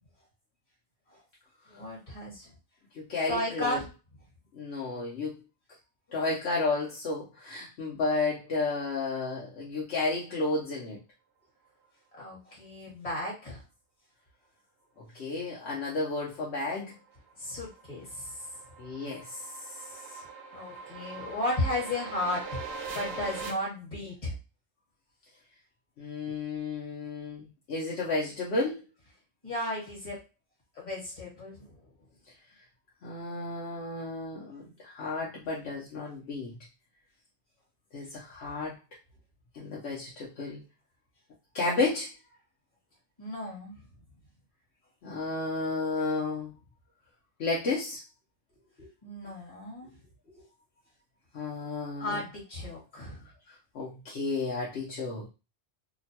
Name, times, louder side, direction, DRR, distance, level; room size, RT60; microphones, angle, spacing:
voice 1, 1.7-2.5 3.3-3.9 12.2-13.6 17.4-18.3 20.5-22.6 22.9-24.3 29.4-30.2 30.7-31.7 43.2-43.7 48.8-49.9 52.0-53.2, left 1 dB, 40° left, -3 dB, 1.6 m, -34 dB
voice 2, 2.9-3.8 4.5-5.4 6.1-11.0 15.1-16.9 18.8-19.5 26.0-28.8 33.0-36.5 37.9-38.7 39.5-40.6 41.5-42.1 45.0-46.5 47.4-48.0 51.3-52.2 53.7-55.3, left 3 dB, 70° left, -5 dB, 1.0 m, -32 dB
sound 1, 16.9-23.5, right 4 dB, 65° right, 0.8 m, -42 dB
3.0 x 2.2 x 2.7 m, 0.29 s
omnidirectional pair, 1.2 m